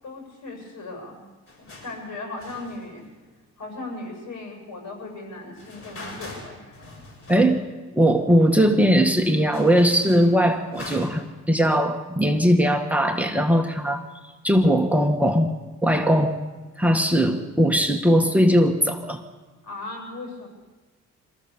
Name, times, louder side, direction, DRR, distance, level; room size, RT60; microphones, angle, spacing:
voice 1, 0.0-1.2 1.7-3.0 3.6-6.8 19.6-20.5, left 2 dB, 65° left, 1 dB, 7.7 m, -37 dB
sound 1, 1.5-2.0 2.4-3.4 5.5-7.7 8.0-8.1 8.7-8.8 9.0-11.4, left 2 dB, 45° left, 7.8 m, -42 dB
voice 2, 7.3-7.6 7.9-14.0 14.4-15.5 15.8-16.4 16.8-19.2, equal, 5° right, 3 dB, 1.8 m, -19 dB
26.0 x 15.0 x 7.1 m, 1.2 s
cardioid pair, 90°, 30 cm